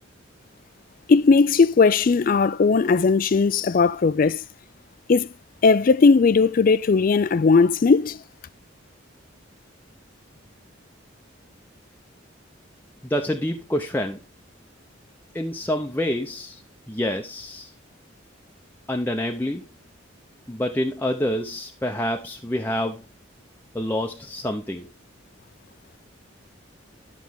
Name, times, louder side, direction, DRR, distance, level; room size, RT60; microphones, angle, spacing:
voice 1, 1.1-4.4 5.1-5.3 5.6-8.2, left 4 dB, 45° left, 0.4 m, -18 dB
voice 2, 13.0-14.2 15.3-16.6 16.9-17.7 18.9-19.6 20.5-23.0 23.7-24.9, left 1 dB, 10° left, 0.7 m, -27 dB
11.5 x 6.0 x 3.6 m
head